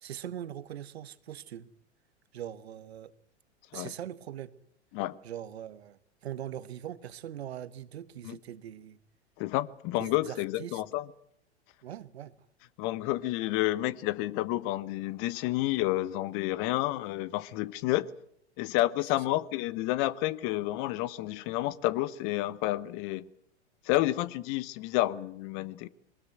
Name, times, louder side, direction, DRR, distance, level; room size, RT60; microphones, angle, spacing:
voice 1, 0.0-1.7 2.3-3.1 3.7-4.5 5.2-9.0 10.0-10.8 11.8-12.3, right 11 dB, 65° right, 1.3 m, -41 dB
voice 2, 9.4-11.0 12.8-18.1 18.6-23.2 23.9-25.9, left 16 dB, 40° left, 1.0 m, -30 dB
22.0 x 20.0 x 9.3 m
figure-of-eight pair, 100°, 34 cm